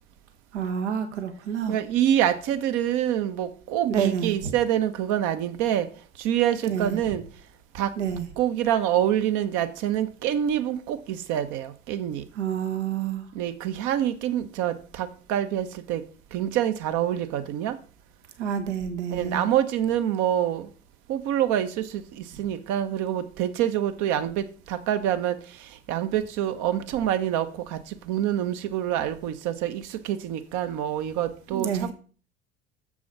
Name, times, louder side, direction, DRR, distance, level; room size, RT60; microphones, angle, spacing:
voice 1, 0.5-1.8 3.8-4.5 6.7-7.0 8.0-8.3 12.3-13.3 18.4-19.4 31.5-31.9, right 8 dB, 80° right, 1.6 m, -28 dB
voice 2, 1.7-5.9 6.2-7.2 7.7-7.9 8.4-12.2 13.3-16.0 16.3-17.8 19.1-20.7 21.1-31.9, right 11 dB, 55° right, 1.1 m, -26 dB
7.1 x 6.1 x 6.1 m
hypercardioid pair, 80°, 35 cm